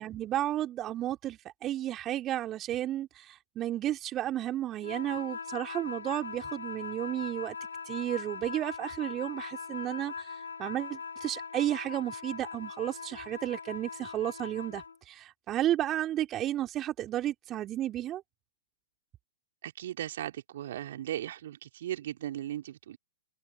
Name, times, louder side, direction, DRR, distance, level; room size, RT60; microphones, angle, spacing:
voice 1, 0.0-7.6 7.9-10.3 10.6-18.2, right 13 dB, 25° right, 2.8 m, -33 dB
sound 1, 4.8-15.0, left 5 dB, 75° left, 3.5 m, -41 dB
voice 2, 19.6-23.0, right 12 dB, 55° right, 3.0 m, -37 dB
figure-of-eight pair, 110°, 0 cm